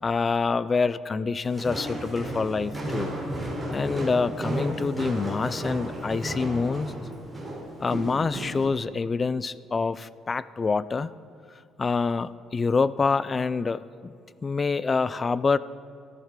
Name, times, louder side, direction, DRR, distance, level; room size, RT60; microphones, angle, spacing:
voice 1, 0.0-3.1 3.7-6.9 7.8-11.1 11.8-14.1 14.4-15.6, left 4 dB, 25° left, 17 dB, 0.3 m, -26 dB
Walk footsteps, 1.4-8.7, right 1 dB, 5° right, 3.3 m, -33 dB
17.5 x 13.5 x 3.7 m, 2.4 s
cardioid pair, 145°, 0 cm